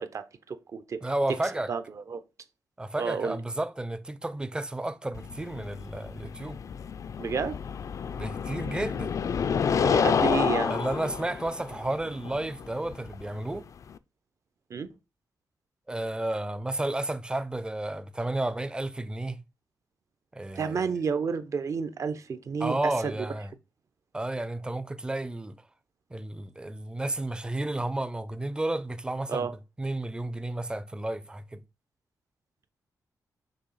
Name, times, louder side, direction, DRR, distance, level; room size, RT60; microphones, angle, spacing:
voice 1, 0.0-1.0 1.7-2.2 3.0-3.4 7.2-7.6 9.8-10.7 14.7-14.9 20.6-23.1 29.3-29.5, right 5 dB, 50° right, 0.8 m, -30 dB
voice 2, 1.0-1.7 2.8-6.6 8.2-9.1 10.6-13.7 15.9-19.4 20.3-20.9 22.6-23.5 24.1-25.6 26.1-29.5 29.8-31.6, right 1 dB, 15° right, 0.6 m, -32 dB
sound 1, 5.1-14.0, left 6 dB, 50° left, 0.4 m, -29 dB
6.5 x 2.9 x 5.7 m
wide cardioid pair, 120°, 7 cm